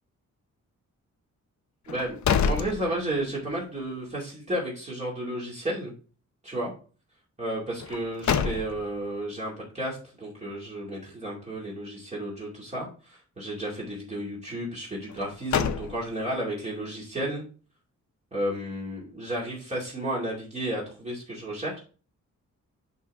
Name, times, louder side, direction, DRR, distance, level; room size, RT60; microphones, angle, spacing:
sound 1, 1.9-3.5 3.9-4.0 7.8-9.1 15.1-16.4, left 7 dB, 70° left, 0.7 m, -28 dB
voice 1, 1.9-2.2 2.4-5.9 6.4-6.7 7.4-17.4 18.3-21.8, right 1 dB, 20° right, -5 dB, 2.4 m, -32 dB
10.5 x 4.0 x 3.5 m, 0.37 s
wide cardioid pair, 165°, 30 cm